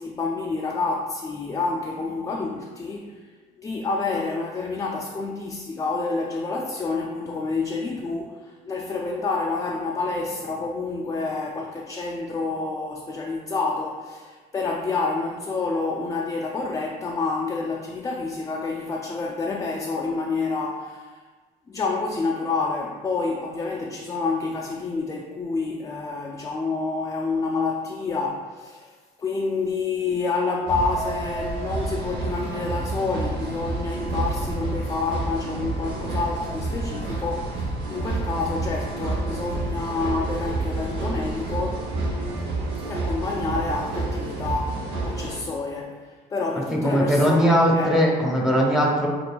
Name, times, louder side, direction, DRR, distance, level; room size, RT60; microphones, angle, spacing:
voice 1, 0.0-3.3 3.6-21.2 21.7-41.9 42.9-47.9, left 3 dB, 20° left, 0 dB, 0.3 m, -28 dB
sound 1, 30.7-45.4, right 2 dB, 80° right, 0.8 m, -29 dB
voice 2, 46.7-49.1, equal, ahead, -3 dB, 0.9 m, -20 dB
6.3 x 2.5 x 2.2 m, 1.4 s
cardioid pair, 110°, 17 cm